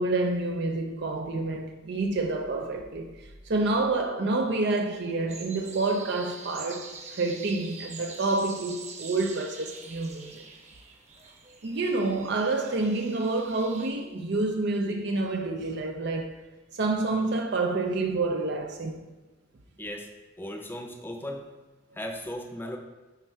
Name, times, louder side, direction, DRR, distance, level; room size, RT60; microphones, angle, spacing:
voice 1, 0.0-10.4 11.6-16.3 16.7-19.1, right 2 dB, 55° right, 0.5 m, -28 dB
sound 1, 5.3-13.9, right 4 dB, 35° right, 1.0 m, -45 dB
voice 2, 19.8-20.1 20.4-21.5 21.9-22.8, left 1 dB, 10° left, 0.7 m, -36 dB
8.3 x 4.4 x 4.6 m
head